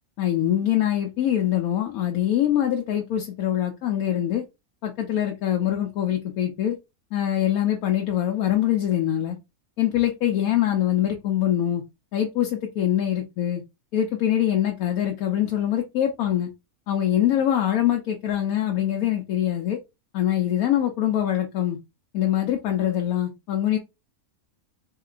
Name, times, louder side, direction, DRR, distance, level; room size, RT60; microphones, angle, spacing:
voice 1, 0.2-4.4 4.8-6.8 7.1-9.4 9.8-11.8 12.1-13.6 13.9-16.5 16.9-19.8 20.1-21.8 22.1-23.8, left 11 dB, 85° left, 1.1 m, -24 dB
3.6 x 2.8 x 2.4 m
omnidirectional pair, 1.5 m